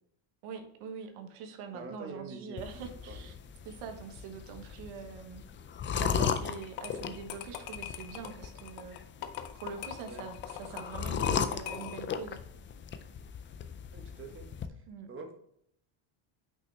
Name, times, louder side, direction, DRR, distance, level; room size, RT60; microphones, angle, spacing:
voice 1, 0.4-3.3 3.6-5.4 6.0-9.0 9.6-12.4 14.9-15.1, right 6 dB, 80° right, 6 dB, 1.3 m, -44 dB
voice 2, 1.7-2.6 3.1-3.3 10.0-10.2 13.9-15.3, right 4 dB, 25° right, 4 dB, 1.2 m, -46 dB
sound 1, 2.6-14.7, left 7 dB, 25° left, 0.3 m, -37 dB
sound 2, 6.6-12.2, left 11 dB, 75° left, 0.9 m, -43 dB
6.2 x 5.5 x 3.3 m, 0.70 s
cardioid pair, 140°, 49 cm